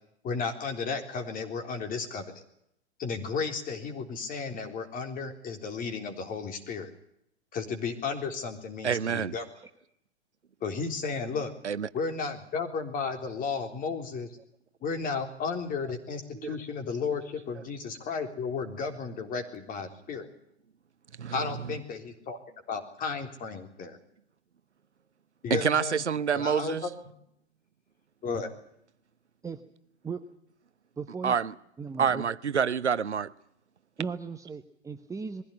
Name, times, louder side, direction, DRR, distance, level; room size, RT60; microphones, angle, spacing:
voice 1, 0.2-2.2 3.0-6.9 7.5-9.5 10.6-11.5 11.9-14.3 14.8-20.3 21.3-22.4 22.7-24.0 25.4-26.0 26.3-26.8 28.2-28.5, left 5 dB, 25° left, 3.8 m, -33 dB
voice 2, 8.8-9.3 11.6-11.9 16.3-16.6 21.2-21.3 25.5-26.8 31.2-31.5 32.0-33.3, right 7 dB, 80° right, 0.9 m, -27 dB
voice 3, 31.0-31.4 31.8-32.2 34.0-35.4, right 5 dB, 10° right, 1.0 m, -36 dB
22.0 x 16.0 x 9.9 m
figure-of-eight pair, 105°, 34 cm